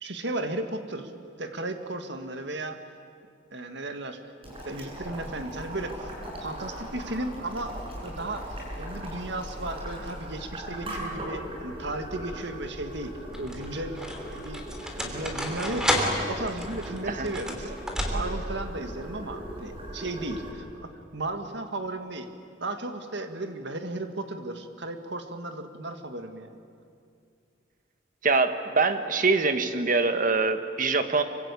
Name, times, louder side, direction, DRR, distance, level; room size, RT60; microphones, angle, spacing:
voice 1, 0.0-1.1 1.4-2.8 3.5-4.2 4.6-6.1 6.4-7.8 8.0-8.5 8.8-14.1 14.3-14.6 15.0-17.8 18.1-22.3 22.6-26.6, right 2 dB, 65° right, 7 dB, 2.1 m, -35 dB
Boiling, 4.4-20.5, equal, 30° right, 7.3 m, -39 dB
sound 1, 11.8-12.3 13.1-18.6, equal, 5° right, 3.2 m, -31 dB
voice 2, 28.2-31.2, right 4 dB, 45° right, 8 dB, 1.6 m, -24 dB
26.5 x 24.5 x 8.6 m, 2.4 s
head